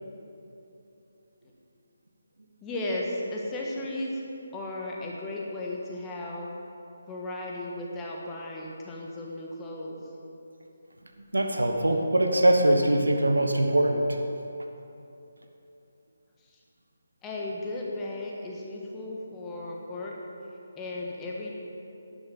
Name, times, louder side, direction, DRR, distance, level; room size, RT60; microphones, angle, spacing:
voice 1, 2.6-4.2 4.5-6.5 7.1-10.0 17.2-20.2 20.7-21.5, left 2 dB, 15° left, -3 dB, 1.4 m, -35 dB
voice 2, 11.3-14.2, right 1 dB, 70° right, 4 dB, 1.3 m, -22 dB
11.5 x 10.0 x 5.6 m, 2.8 s
figure-of-eight pair, 145°, 0 cm